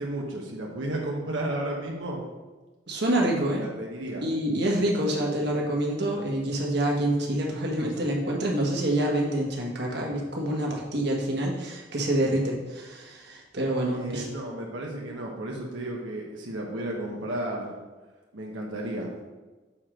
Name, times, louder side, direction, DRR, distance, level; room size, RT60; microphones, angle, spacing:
voice 1, 0.0-2.2 3.6-4.2 13.9-17.7 18.3-19.1, right 1 dB, 90° right, -2 dB, 1.2 m, -33 dB
voice 2, 2.9-3.6 4.2-14.3, right 1 dB, 60° right, -1 dB, 1.4 m, -27 dB
7.2 x 4.5 x 5.0 m, 1.2 s
head